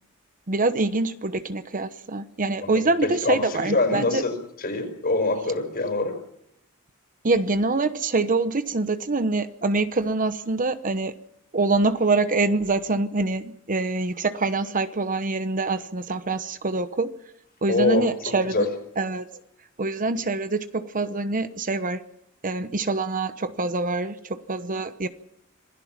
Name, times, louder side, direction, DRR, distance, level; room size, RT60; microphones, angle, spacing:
voice 1, 0.5-4.2 7.2-11.1 11.5-17.1 17.6-18.7 19.0-19.3 19.8-22.0 22.4-25.1, right 3 dB, 40° right, 11 dB, 1.0 m, -25 dB
voice 2, 2.6-6.1 17.7-18.1 18.5-18.7, left 2 dB, 45° left, 6 dB, 5.1 m, -24 dB
26.5 x 17.0 x 6.0 m, 0.80 s
head